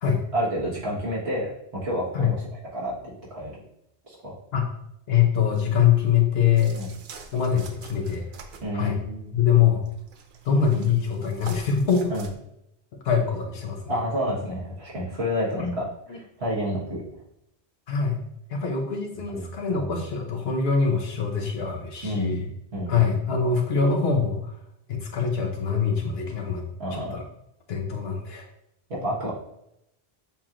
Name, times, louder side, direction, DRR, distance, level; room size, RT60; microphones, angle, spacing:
voice 1, 0.3-3.5 4.1-4.4 6.7-6.9 8.6-9.3 12.1-12.3 13.9-17.0 19.3-19.9 22.0-22.4 22.7-23.0 26.8-27.2 28.9-29.3, equal, 85° right, -6 dB, 1.6 m, -30 dB
voice 2, 5.1-6.8 7.3-8.2 8.7-9.0 9.3-9.8 10.4-12.1 13.0-13.8 15.6-15.7 16.1-16.2 17.9-18.2 18.5-22.5 22.9-24.5 24.9-26.6 26.9-27.2 27.7-28.4, left 7 dB, 75° left, 2 dB, 1.0 m, -23 dB
sound 1, 6.6-12.3, right 4 dB, 60° right, 0.6 m, -46 dB
7.0 x 2.5 x 2.9 m, 0.80 s
omnidirectional pair, 1.0 m